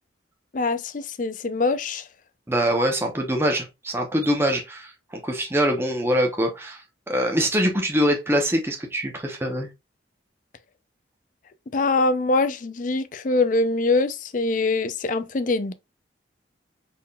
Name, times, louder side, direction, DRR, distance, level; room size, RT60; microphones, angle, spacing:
voice 1, 0.5-2.0 11.7-15.7, left 3 dB, 45° left, 0.5 m, -23 dB
voice 2, 2.5-6.8 7.1-9.7, equal, 15° right, 0.9 m, -23 dB
4.4 x 3.6 x 2.3 m
head